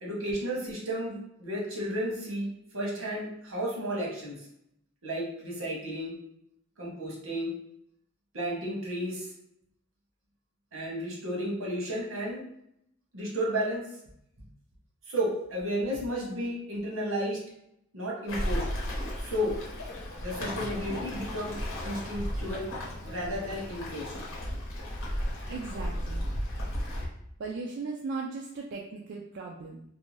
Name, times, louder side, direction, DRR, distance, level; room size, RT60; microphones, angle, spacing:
voice 1, 0.0-4.3 5.0-6.1 6.8-7.5 8.3-9.3 10.7-12.4 13.1-13.8 15.1-17.4 17.9-18.6 19.2-19.5 20.2-21.6 21.8-22.7 23.1-24.1, equal, 90° right, -3 dB, 1.0 m, -32 dB
Waves surf, 18.3-27.1, equal, 75° left, 0.8 m, -34 dB
voice 2, 25.5-26.3 27.4-29.8, right 4 dB, 60° right, -1 dB, 0.3 m, -37 dB
2.6 x 2.2 x 3.0 m, 0.75 s
head